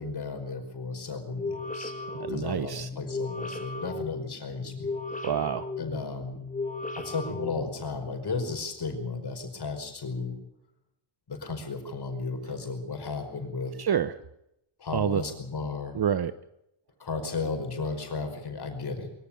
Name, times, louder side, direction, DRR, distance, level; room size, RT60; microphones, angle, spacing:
voice 1, 0.0-4.9 5.8-6.4 7.0-10.4 11.3-13.7 14.8-16.0 17.0-19.1, left 4 dB, 50° left, 5 dB, 5.3 m, -34 dB
sound 1, 1.3-8.2, left 3 dB, 15° left, 2.5 m, -36 dB
voice 2, 2.2-2.9 5.2-5.7 13.8-14.2 14.9-15.2 15.9-16.3, right 8 dB, 50° right, 14 dB, 1.0 m, -27 dB
23.5 x 14.5 x 8.7 m, 0.83 s
cardioid pair, 80°, 49 cm